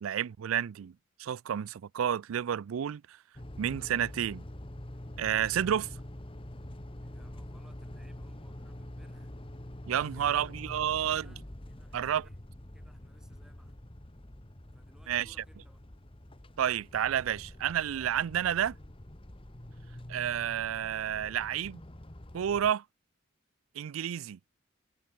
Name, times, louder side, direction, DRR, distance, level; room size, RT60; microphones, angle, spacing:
voice 1, 0.0-0.9 1.2-3.2 3.6-4.4 5.2-5.9 9.9-11.3 11.9-12.3 15.1-15.3 16.6-18.8 20.1-21.8 22.3-22.8 23.8-24.4, right 9 dB, 85° right, 0.4 m, -30 dB
sound 1, 3.4-22.7, left 1 dB, 25° left, 1.5 m, -46 dB
voice 2, 7.0-9.3 10.0-12.4 12.7-13.7 14.7-15.8, equal, 5° right, 5.5 m, -63 dB
head